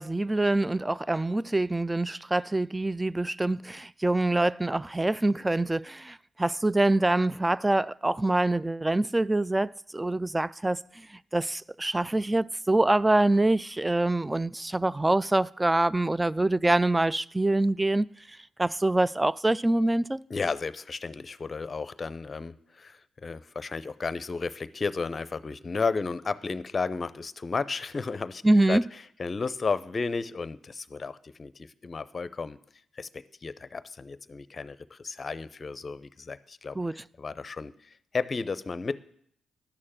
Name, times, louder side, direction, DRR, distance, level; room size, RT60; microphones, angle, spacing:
voice 1, 0.0-20.2 28.4-28.8 36.8-37.0, right 2 dB, 15° right, 0.3 m, -25 dB
voice 2, 20.3-28.4 28.7-28.8 29.2-32.6 33.0-37.7 38.1-39.0, left 4 dB, 40° left, 0.6 m, -33 dB
11.5 x 6.5 x 7.3 m
hypercardioid pair, 45°, 0 cm